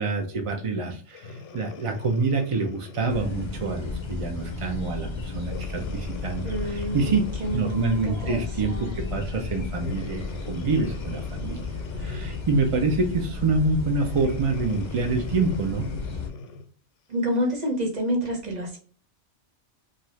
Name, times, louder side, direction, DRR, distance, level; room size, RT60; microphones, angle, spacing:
voice 1, 0.0-6.4 6.7-7.2 7.5-10.2 10.5-11.6 12.0-15.9, right 3 dB, 60° right, 3 dB, 0.3 m, -26 dB
Breathing, 1.1-3.8 4.4-4.6 5.4-8.3 9.7-12.6 14.0-16.7 17.4-17.5, left 3 dB, 85° left, 0.9 m, -42 dB
sound 1, 3.1-16.3, left 3 dB, 40° left, 0.4 m, -34 dB
voice 2, 6.4-7.9 8.2-9.0 17.1-18.8, equal, 40° right, 1 dB, 0.9 m, -29 dB
2.7 x 2.3 x 3.1 m, 0.42 s
omnidirectional pair, 1.2 m